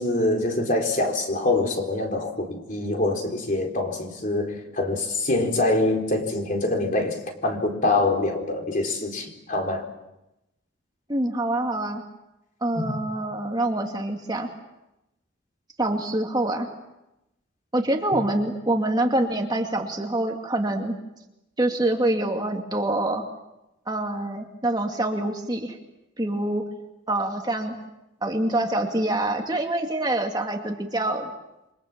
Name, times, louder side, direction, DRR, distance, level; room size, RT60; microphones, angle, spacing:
voice 1, 0.0-9.8 12.7-13.0, left 2 dB, 40° left, 4.2 m, -25 dB
voice 2, 11.1-12.0 12.6-14.5 15.8-16.7 17.7-21.0 21.6-23.2 23.9-25.8 26.2-26.6 27.1-27.7 28.2-31.3, right 1 dB, 20° right, 2.2 m, -25 dB
28.0 x 25.0 x 7.4 m
head